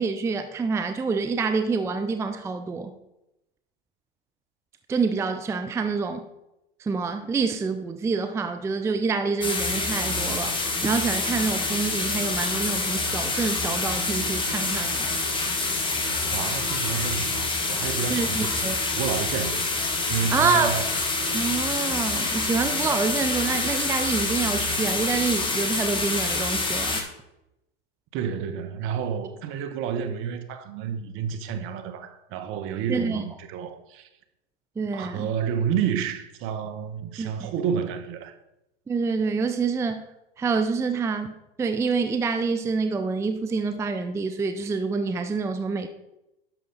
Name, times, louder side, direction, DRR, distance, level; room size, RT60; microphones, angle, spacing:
voice 1, 0.0-2.9 4.9-6.2 6.8-15.1 18.1-18.8 20.3-20.8 21.3-27.0 32.9-33.2 34.8-35.3 37.2-37.5 38.9-40.1 40.4-45.9, right 4 dB, 10° right, 0.5 m, -27 dB
sound 1, 9.4-27.0, left 3 dB, 15° left, 1.7 m, -27 dB
voice 2, 16.3-18.5 18.9-19.7 20.1-20.9 28.1-34.1 34.9-38.4, right 7 dB, 45° right, 1.1 m, -30 dB
10.5 x 6.8 x 4.0 m
hypercardioid pair, 100°, 30 cm